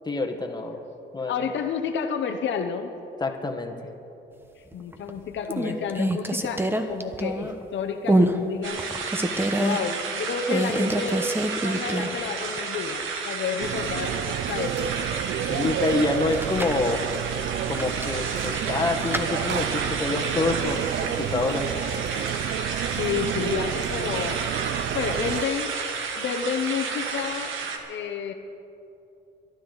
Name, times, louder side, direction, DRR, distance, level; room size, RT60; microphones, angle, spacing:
voice 1, 0.0-0.8 1.1-1.5 3.2-3.8 15.4-17.0 17.7-21.7, left 3 dB, 20° left, 3 dB, 1.5 m, -27 dB
voice 2, 1.3-2.9 4.6-8.8 9.6-11.3 11.6-15.1 15.5-15.8 23.0-24.4 24.9-25.7 26.2-27.6 27.9-28.3, left 6 dB, 70° left, 5 dB, 0.9 m, -30 dB
sound 1, 4.7-5.1 5.5-7.6 8.1-8.4 8.8-9.8 10.5-12.3 12.6-12.7 16.2-16.8 17.7-19.3, right 1 dB, 10° right, 1.0 m, -25 dB
sound 2, 8.6-27.8, right 5 dB, 80° right, 1.6 m, -32 dB
sound 3, 13.6-25.5, right 11 dB, 60° right, 0.4 m, -30 dB
22.0 x 12.0 x 4.0 m, 2.8 s
cardioid pair, 90°, 20 cm